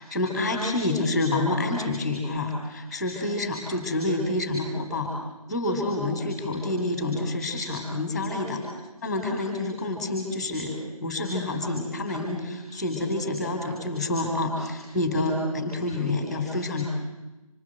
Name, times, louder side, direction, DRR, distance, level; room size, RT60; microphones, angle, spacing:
voice 1, 0.0-5.1 5.5-8.6 9.0-16.8, left 2 dB, ahead, 2 dB, 4.1 m, -28 dB
27.0 x 25.5 x 8.0 m, 1.0 s
figure-of-eight pair, 160°, 19 cm